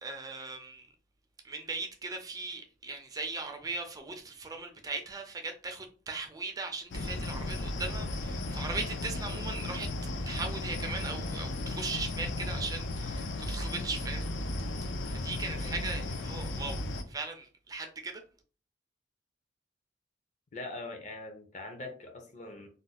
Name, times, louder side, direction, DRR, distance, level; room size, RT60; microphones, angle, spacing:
voice 1, 0.0-0.9 1.4-9.9 10.3-14.3 15.1-16.8 17.1-18.2, right 3 dB, 20° right, 0.3 m, -38 dB
sound 1, 6.9-17.0, left 2 dB, 85° left, 0.5 m, -35 dB
voice 2, 20.5-22.7, left 2 dB, 40° left, 0.5 m, -42 dB
2.5 x 2.1 x 3.9 m
head